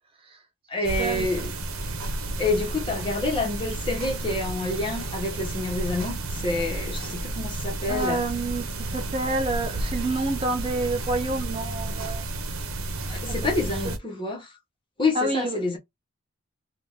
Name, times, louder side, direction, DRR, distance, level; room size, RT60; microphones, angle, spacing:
voice 1, 0.7-1.5 2.4-8.2 13.1-14.5 15.0-15.8, left 2 dB, 25° left, 1.4 m, -28 dB
sound 1, 0.8-14.0, right 2 dB, 80° right, 0.9 m, -32 dB
voice 2, 7.9-12.6 13.3-13.5 13.8-14.0 15.1-15.8, right 2 dB, 25° right, 0.5 m, -29 dB
2.9 x 2.7 x 3.7 m
head